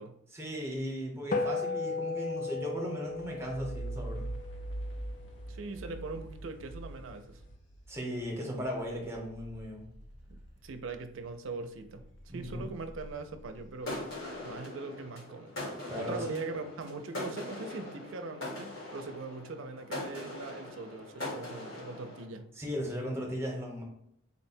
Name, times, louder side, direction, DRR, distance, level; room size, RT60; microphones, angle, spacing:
voice 1, 0.3-4.3 7.9-9.9 12.3-12.6 15.9-16.3 22.5-23.8, equal, 10° right, -2 dB, 0.9 m, -37 dB
sound 1, 1.3-6.0, left 4 dB, 40° left, 0.3 m, -36 dB
sound 2, 3.1-11.4 11.7-14.3, right 1 dB, 60° left, 0.8 m, -44 dB
voice 2, 5.5-7.4 10.3-12.1 12.3-14.0 14.4-15.5 16.0-22.5, right 3 dB, 80° right, 8 dB, 0.5 m, -41 dB
sound 3, 13.8-22.3, left 2 dB, 80° left, 1.6 m, -41 dB
4.1 x 2.1 x 4.2 m, 0.70 s
head